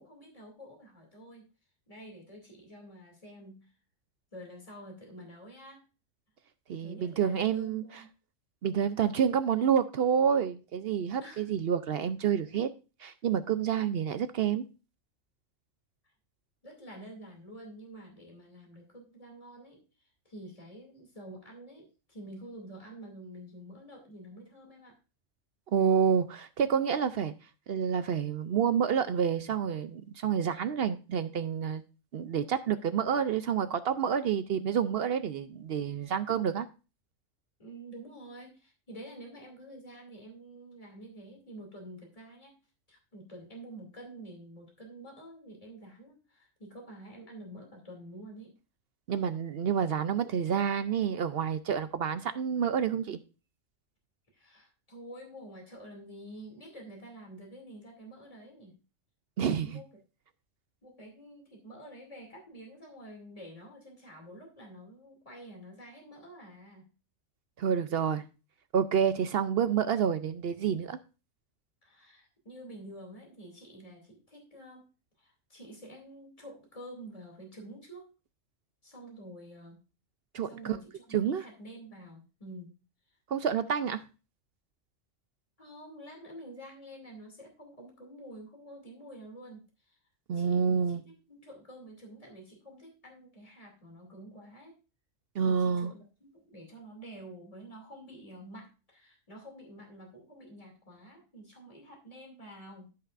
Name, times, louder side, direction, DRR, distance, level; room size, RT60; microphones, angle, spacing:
voice 1, 0.0-1.5 1.9-3.7 4.3-5.8 6.8-8.1 11.2-11.5 16.0-16.1 16.6-25.0 37.6-42.6 42.9-48.5 54.3-58.8 59.4-60.0 60.8-66.9 71.8-74.9 75.2-78.1 78.8-79.8 80.4-82.8 85.6-90.0 90.3-91.0 91.3-94.8 95.4-102.9, right 1 dB, 25° left, 2.6 m, -48 dB
voice 2, 6.7-7.8 8.6-12.7 13.0-14.6 25.7-27.3 27.7-31.8 32.1-36.7 49.1-53.2 59.4-59.8 67.6-68.2 68.7-71.0 80.3-80.8 81.1-81.4 83.3-84.0 90.3-91.0 95.4-95.9, right 7 dB, 60° right, 0.7 m, -28 dB
14.0 x 5.7 x 2.5 m
omnidirectional pair, 1.4 m